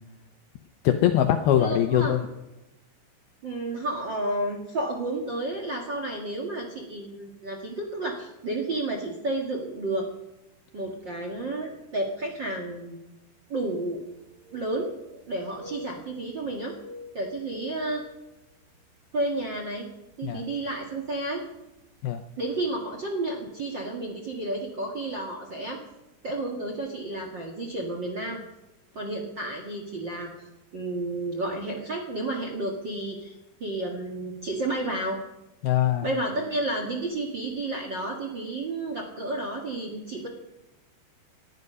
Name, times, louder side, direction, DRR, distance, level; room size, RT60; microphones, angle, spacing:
voice 1, 0.8-2.2 20.2-20.4 22.0-22.2 35.6-36.1, left 11 dB, 75° left, 7 dB, 2.3 m, -22 dB
voice 2, 1.6-2.3 3.4-10.1 10.7-13.0 13.5-14.0 14.5-14.9 15.3-16.7 17.1-18.0 19.1-19.9 20.2-21.4 22.4-25.8 26.2-28.4 28.9-30.3 30.7-35.2 36.0-40.3, right 2 dB, 60° right, 1 dB, 1.1 m, -31 dB
sound 1, 13.6-13.7 14.0-15.3 15.5-16.4 16.7-18.8 19.2-19.4 20.1-20.3 21.4-21.5 21.8-21.9, left 2 dB, 30° right, 5.1 m, -46 dB
19.0 x 12.0 x 5.5 m, 0.94 s
omnidirectional pair, 5.1 m